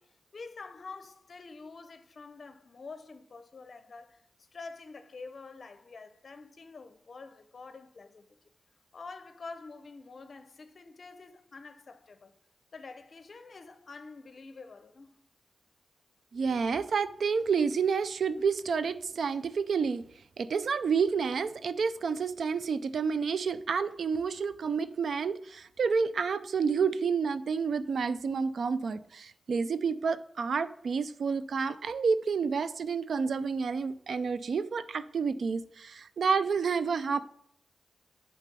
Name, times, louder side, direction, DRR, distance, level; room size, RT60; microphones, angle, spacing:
voice 1, 0.0-4.2 4.5-8.4 8.9-12.4 12.7-15.2, left 4 dB, 55° left, 0.7 m, -47 dB
voice 2, 16.3-20.0 20.4-37.2, right 5 dB, 80° right, 0.4 m, -29 dB
7.4 x 4.3 x 5.3 m
wide cardioid pair, 85°, 0 cm